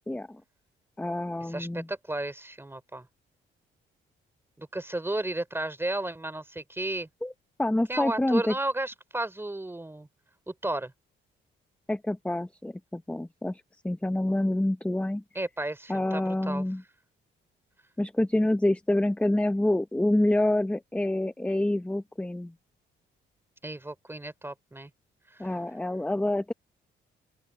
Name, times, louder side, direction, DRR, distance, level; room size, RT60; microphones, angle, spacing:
voice 1, 0.1-0.4 1.0-1.9 7.2-7.3 7.6-8.5 11.9-15.2 15.9-16.8 18.0-22.5 25.4-26.5, left 1 dB, 5° left, 1.0 m, -27 dB
voice 2, 1.4-3.1 4.6-7.1 7.9-10.1 10.5-10.9 15.4-16.7 23.6-24.9 25.3-25.5, right 2 dB, 10° right, 3.5 m, -33 dB
open air
cardioid pair, 90°, 20 cm